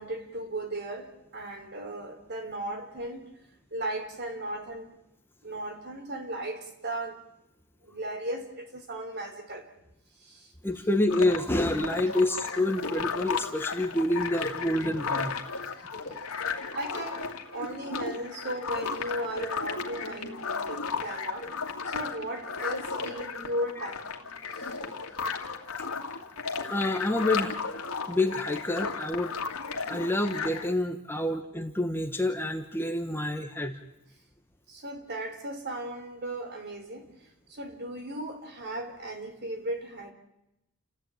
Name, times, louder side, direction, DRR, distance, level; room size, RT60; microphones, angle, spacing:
voice 1, 0.0-3.2 3.7-4.8 5.4-7.2 7.9-9.7 10.3-10.4 16.7-21.5 21.9-24.0 34.7-37.0 37.5-40.1, right 1 dB, 50° right, 6 dB, 3.8 m, -36 dB
voice 2, 10.6-15.3 26.7-27.5 28.1-29.4 29.9-33.8, left 1 dB, 10° left, 6 dB, 1.3 m, -28 dB
sound 1, 11.1-30.7, left 5 dB, 70° left, 2.5 m, -34 dB
29.0 x 15.0 x 9.1 m, 0.88 s
head